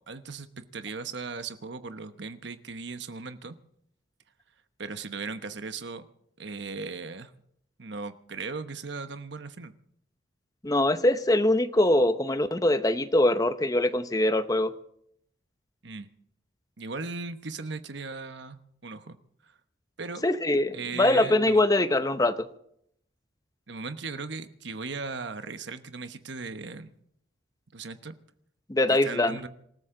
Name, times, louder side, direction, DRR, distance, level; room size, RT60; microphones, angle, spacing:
voice 1, 0.1-3.6 4.8-6.1 6.4-7.3 7.8-9.7 15.8-16.1 16.8-19.2 19.4-19.5 20.0-20.2 20.7-21.6 23.7-26.9 27.7-28.2 28.9-29.5, right 4 dB, 60° right, 10 dB, 1.1 m, -37 dB
voice 2, 10.6-14.7 20.2-22.5 28.7-29.4, left 1 dB, 20° left, 10 dB, 0.8 m, -23 dB
27.0 x 13.5 x 3.8 m, 0.71 s
head